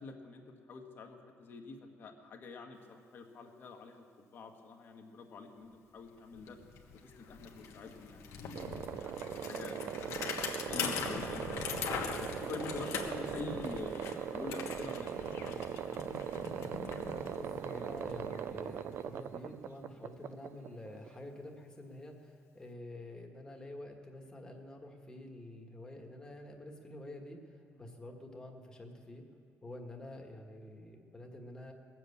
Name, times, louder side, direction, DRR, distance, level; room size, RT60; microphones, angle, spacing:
voice 1, 0.0-6.6 7.0-9.8 10.7-11.6 12.2-14.1 14.3-16.0 27.7-27.9, left 3 dB, 50° left, 3 dB, 1.4 m, -47 dB
Bicycle, 6.0-6.1 6.3-19.2, left 6 dB, 80° left, 1.3 m, -42 dB
sound 1, 8.6-21.2, right 9 dB, 55° right, 0.4 m, -40 dB
voice 2, 17.3-29.2 29.6-31.7, left 1 dB, 15° left, 2 dB, 1.5 m, -48 dB
19.5 x 7.6 x 8.4 m, 2.3 s
cardioid pair, 160°, 5 cm